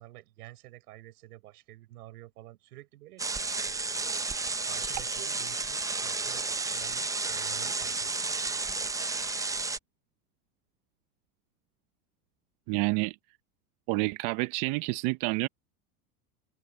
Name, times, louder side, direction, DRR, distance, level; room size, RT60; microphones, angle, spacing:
voice 1, 0.0-3.3 3.5-4.0 4.3-9.2, right 16 dB, 80° right, 6.8 m, -50 dB
sound 1, 3.2-9.8, right 3 dB, 10° right, 0.7 m, -32 dB
voice 2, 12.7-13.2 13.9-15.5, right 24 dB, 50° right, 0.8 m, -28 dB
open air
supercardioid pair, 115°, 45 cm